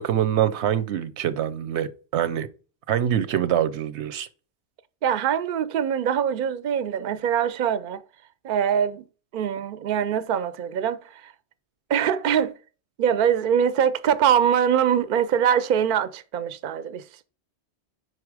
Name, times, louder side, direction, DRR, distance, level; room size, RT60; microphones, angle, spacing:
voice 1, 0.0-2.5 2.9-4.3, right 10 dB, 85° right, 1.0 m, -24 dB
voice 2, 5.0-8.0 8.4-9.0 9.3-11.3 11.9-12.5 13.0-17.0, right 8 dB, 55° right, 0.6 m, -23 dB
5.5 x 4.8 x 4.7 m
omnidirectional pair, 1.1 m